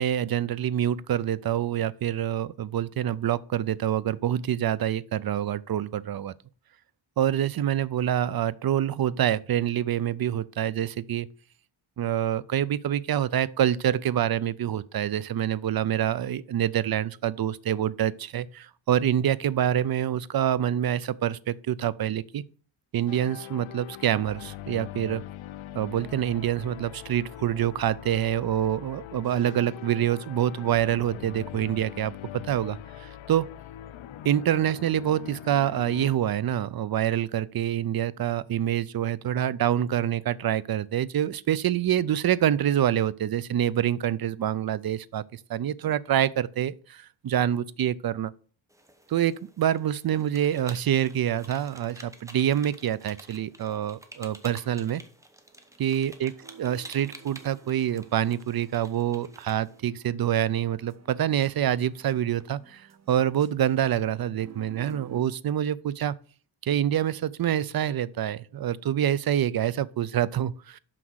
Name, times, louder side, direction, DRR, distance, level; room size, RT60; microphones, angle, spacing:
voice 1, 0.0-6.3 7.2-11.3 12.0-22.4 22.9-25.2 25.8-33.5 34.3-48.3 49.1-55.0 55.8-56.3 56.6-66.1 66.6-70.8, right 10 dB, 50° right, 0.5 m, -26 dB
sound 1, 23.1-36.2, left 12 dB, 80° left, 0.6 m, -42 dB
sound 2, 48.7-59.8, right 1 dB, 5° right, 0.9 m, -50 dB
sound 3, 55.5-65.2, right 6 dB, 35° right, 0.9 m, -51 dB
6.0 x 5.9 x 6.3 m
wide cardioid pair, 140°, 47 cm